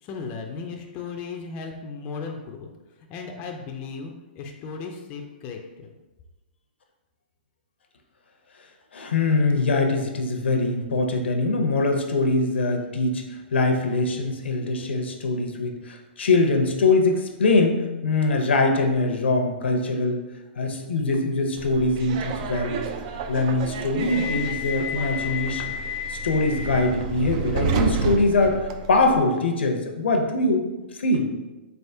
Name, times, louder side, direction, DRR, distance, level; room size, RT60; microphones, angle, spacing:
voice 1, 0.0-2.7 3.0-5.9, left 5 dB, 30° left, 2 dB, 0.4 m, -36 dB
voice 2, 8.9-20.2 20.6-22.9 23.3-25.8 26.1-30.7 30.9-31.3, left 2 dB, 85° left, 3 dB, 0.6 m, -23 dB
Subway metro underground, 21.6-29.2, right 3 dB, 40° right, 0.3 m, -30 dB
4.0 x 3.4 x 2.7 m, 1.1 s
hypercardioid pair, 145°, 6 cm